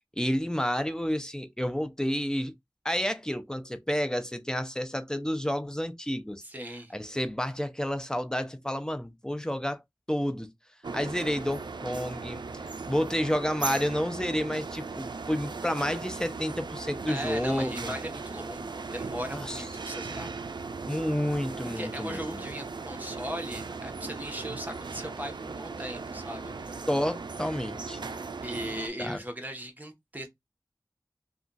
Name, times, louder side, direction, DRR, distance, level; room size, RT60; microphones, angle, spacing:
voice 1, 0.2-2.5 2.8-6.4 6.9-9.8 10.1-10.5 10.9-17.9 19.3-19.6 20.9-22.4 26.9-28.0 29.0-29.2, equal, 10° left, 0.5 m, -30 dB
voice 2, 6.4-6.9 17.1-20.3 21.6-26.7 28.4-30.3, equal, 20° right, 0.9 m, -38 dB
sound 1, 10.8-28.9, right 4 dB, 80° right, 0.3 m, -38 dB
2.4 x 2.2 x 3.8 m
wide cardioid pair, 50°, 8 cm